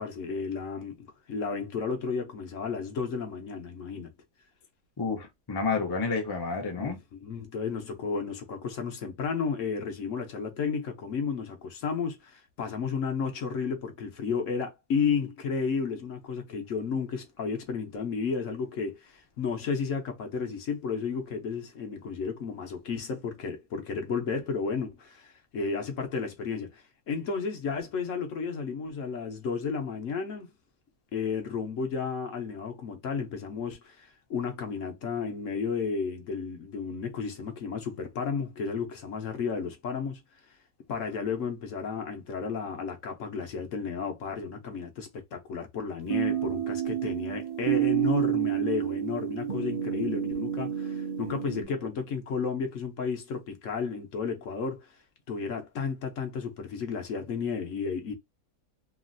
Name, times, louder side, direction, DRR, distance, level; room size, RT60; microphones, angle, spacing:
voice 1, 0.0-4.1 6.7-30.5 31.1-40.2 40.9-54.9 55.3-58.1, left 5 dB, 65° left, 1.1 m, -33 dB
voice 2, 5.0-7.0, left 4 dB, 25° left, 0.6 m, -30 dB
sound 1, 46.1-51.6, right 11 dB, 40° right, 0.6 m, -29 dB
3.0 x 2.4 x 2.5 m
omnidirectional pair, 1.5 m